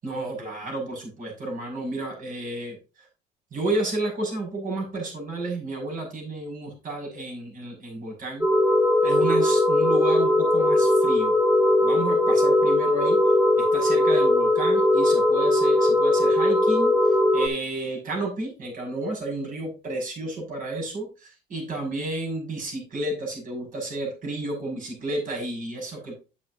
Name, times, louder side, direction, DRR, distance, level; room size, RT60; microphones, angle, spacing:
voice 1, 0.0-2.8 3.5-8.5 9.0-11.4 11.8-13.2 13.6-26.2, right 2 dB, 50° right, 1 dB, 5.9 m, -31 dB
sound 1, 8.4-17.5, left 1 dB, 10° right, 1.5 m, -20 dB
10.0 x 8.6 x 2.8 m, 0.31 s
cardioid pair, 110°, 17 cm